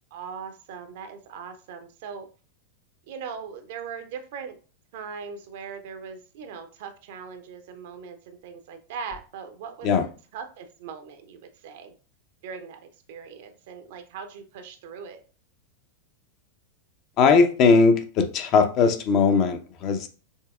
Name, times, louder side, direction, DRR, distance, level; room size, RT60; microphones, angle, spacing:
voice 1, 0.1-2.3 3.1-4.6 4.9-9.9 10.3-11.9 12.4-12.8 13.1-15.2, right 6 dB, 50° right, 0.6 m, -40 dB
voice 2, 17.2-20.1, left 5 dB, 40° left, 0.6 m, -19 dB
5.5 x 3.4 x 2.3 m
figure-of-eight pair, 90°, 0 cm